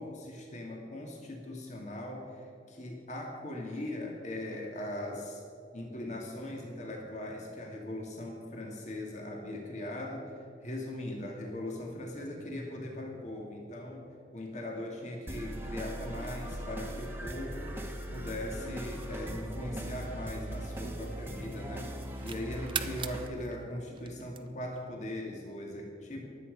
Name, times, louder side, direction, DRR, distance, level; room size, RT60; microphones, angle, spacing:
voice 1, 0.0-5.4 5.7-10.3 10.6-17.7 18.1-21.9 22.2-26.3, left 1 dB, 40° left, 0 dB, 2.2 m, -40 dB
sound 1, 15.3-23.3, right 1 dB, 10° right, 1.4 m, -39 dB
sound 2, 21.0-21.4 21.8-24.8, right 8 dB, 25° right, 0.6 m, -41 dB
23.0 x 8.5 x 5.2 m, 2.6 s
head